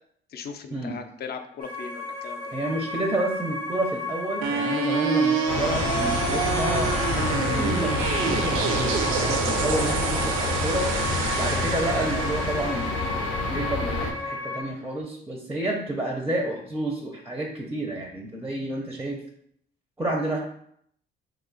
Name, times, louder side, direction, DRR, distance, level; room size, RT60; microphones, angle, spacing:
voice 1, 0.3-2.6, left 6 dB, 50° left, 7 dB, 0.4 m, -38 dB
sound 1, 1.6-14.6, left 2 dB, 20° left, 0.7 m, -33 dB
voice 2, 2.5-7.9 8.2-10.9 11.4-19.2 20.0-20.4, right 1 dB, 10° right, 1 dB, 0.5 m, -30 dB
sound 2, 4.4-14.5, right 6 dB, 85° right, 0.4 m, -28 dB
sound 3, 5.5-14.1, left 3 dB, 90° left, 0.7 m, -28 dB
3.1 x 2.3 x 3.8 m, 0.70 s
cardioid pair, 90°, 20 cm